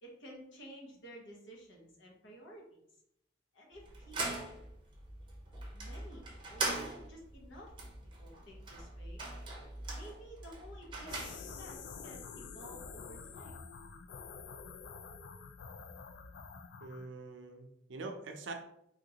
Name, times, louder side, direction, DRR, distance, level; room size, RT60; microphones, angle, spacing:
voice 1, 0.0-2.8 3.5-4.6 5.7-6.2 6.5-7.7 8.0-9.2 9.9-13.6, equal, 80° left, -2 dB, 1.0 m, -52 dB
sound 1, 3.7-11.8, right 2 dB, 25° right, 0.6 m, -41 dB
sound 2, 11.0-17.1, left 5 dB, 60° left, 0.3 m, -48 dB
voice 2, 16.8-18.5, right 3 dB, 80° right, 5 dB, 0.5 m, -44 dB
3.7 x 2.5 x 2.8 m, 0.76 s
head